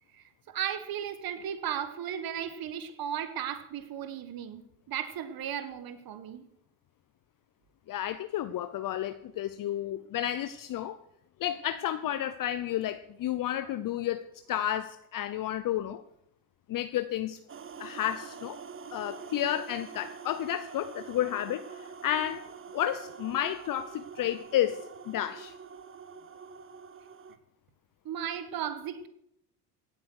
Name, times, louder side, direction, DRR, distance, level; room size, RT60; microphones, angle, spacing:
voice 1, 0.1-4.6 4.9-6.4 28.1-29.1, right 9 dB, 50° right, 1.7 m, -35 dB
voice 2, 7.9-11.0 11.4-14.2 14.5-16.0 16.7-17.4 17.8-18.6 18.9-22.4 22.7-25.6, left 11 dB, 45° left, 0.8 m, -31 dB
sound 1, 17.5-27.4, right 6 dB, 25° right, 1.2 m, -45 dB
16.5 x 8.5 x 6.5 m
supercardioid pair, 85°, 47 cm